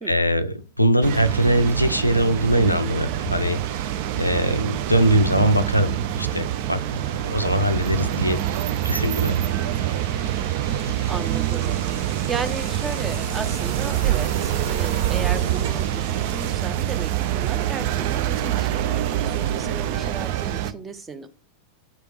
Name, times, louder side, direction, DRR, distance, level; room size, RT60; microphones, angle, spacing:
voice 1, 0.0-3.8 4.2-8.6 8.8-9.3, equal, 90° left, 11 dB, 0.4 m, -22 dB
sound 1, 1.0-20.7, right 11 dB, 50° right, 0.5 m, -25 dB
sound 2, 2.9-17.8, right 1 dB, 75° right, 2.6 m, -43 dB
voice 2, 11.1-11.8 12.0-21.3, right 4 dB, 15° right, 7 dB, 0.8 m, -35 dB
9.7 x 3.4 x 4.7 m, 0.42 s
figure-of-eight pair, 90°, 0 cm